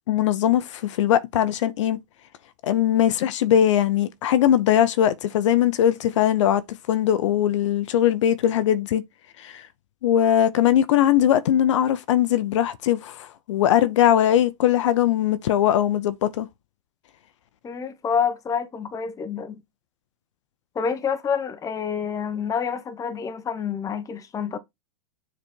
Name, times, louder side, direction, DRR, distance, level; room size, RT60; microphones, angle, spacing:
voice 1, 0.1-2.0 2.6-6.6 6.9-9.0 9.4-9.7 10.0-16.5, left 11 dB, 70° left, 0.8 m, -20 dB
voice 2, 17.6-19.6 20.7-24.6, left 7 dB, 20° left, 1.2 m, -28 dB
6.9 x 4.3 x 4.4 m
hypercardioid pair, 120°, 16 cm